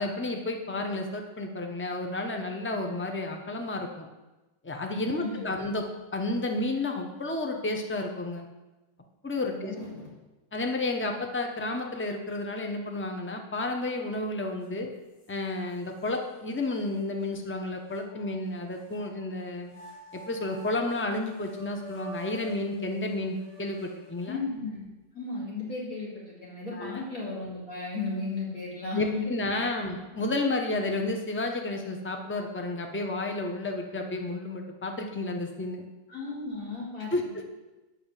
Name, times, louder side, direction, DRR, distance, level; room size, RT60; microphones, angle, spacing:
voice 1, 0.0-4.1 4.6-5.9 6.1-8.4 9.2-9.7 10.5-14.9 15.3-19.7 20.1-24.4 26.7-27.0 28.9-35.8 37.1-37.4, left 2 dB, 15° left, 3 dB, 0.4 m, -31 dB
voice 2, 5.1-5.6 9.5-10.1 24.3-24.8 25.1-29.8 36.1-37.1, left 3 dB, 45° left, -6 dB, 3.2 m, -35 dB
sound 1, 14.6-14.7 15.2-16.1 16.7-16.8 17.9-19.1 19.6-24.6, left 1 dB, 80° left, 4.6 m, -48 dB
9.5 x 5.9 x 7.3 m, 1.1 s
omnidirectional pair, 2.0 m